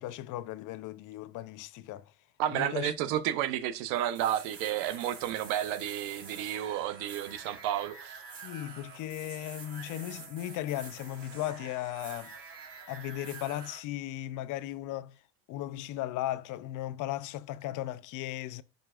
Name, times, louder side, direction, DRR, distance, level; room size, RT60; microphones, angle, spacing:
voice 1, 0.0-2.1 2.5-2.9 8.4-12.3 12.9-15.2 15.5-18.6, left 14 dB, 60° left, 0.7 m, -36 dB
voice 2, 2.4-8.2, right 11 dB, 80° right, 1.1 m, -31 dB
sound 1, 3.9-13.8, right 5 dB, 40° right, 2.9 m, -47 dB
10.5 x 5.3 x 2.5 m
supercardioid pair, 115°, 35 cm